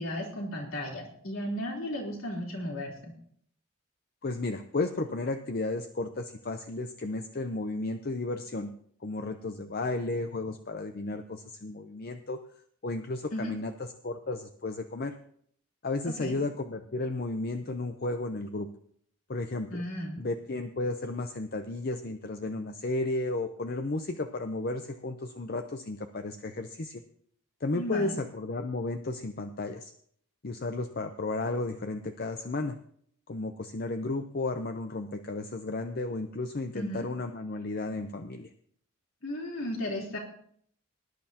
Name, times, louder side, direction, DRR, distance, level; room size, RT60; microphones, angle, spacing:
voice 1, 0.0-3.1 13.3-13.5 16.2-16.4 19.7-20.2 27.7-28.2 36.7-37.1 39.2-40.2, equal, 80° left, -2 dB, 3.5 m, -34 dB
voice 2, 4.2-8.7 9.0-12.4 12.8-13.7 14.0-15.1 15.8-18.7 19.3-19.8 20.2-27.0 27.6-29.9 30.4-32.8 33.3-38.5, left 2 dB, 45° left, 7 dB, 0.6 m, -33 dB
19.0 x 10.5 x 2.9 m, 0.63 s
head